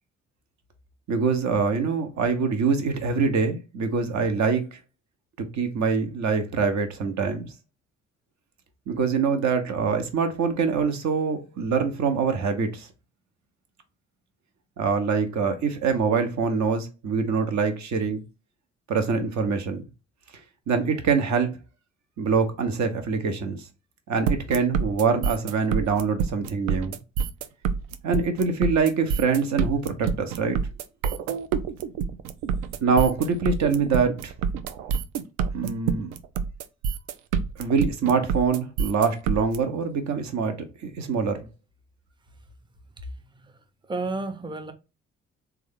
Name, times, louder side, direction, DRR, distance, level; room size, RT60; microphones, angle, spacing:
voice 1, 1.1-4.8 5.5-7.5 8.9-12.9 14.8-18.2 18.9-19.9 20.7-21.6 22.2-23.7 24.1-27.0 28.0-30.6 32.8-34.3 35.5-36.1 37.6-40.6 40.8-41.5, right 5 dB, 50° right, 0.9 m, -24 dB
sound 1, 24.3-39.6, right 6 dB, 75° right, 0.5 m, -27 dB
voice 2, 43.3-44.7, right 3 dB, 15° right, 0.7 m, -32 dB
3.5 x 2.4 x 3.4 m
hypercardioid pair, 45°, 36 cm